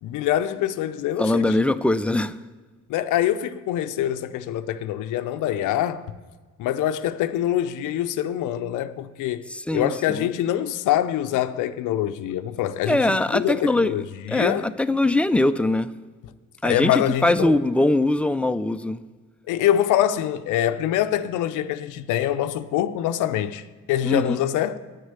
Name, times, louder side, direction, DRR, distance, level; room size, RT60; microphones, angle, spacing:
voice 1, 0.0-1.5 2.9-6.1 6.6-14.7 16.6-17.5 19.5-24.8, left 11 dB, 85° left, 0.5 m, -25 dB
voice 2, 1.2-2.4 9.5-10.3 12.9-13.9 14.3-15.9 16.6-19.0 24.0-24.4, left 2 dB, 5° left, 0.4 m, -22 dB
9.3 x 6.3 x 8.1 m
cardioid pair, 90°, 30 cm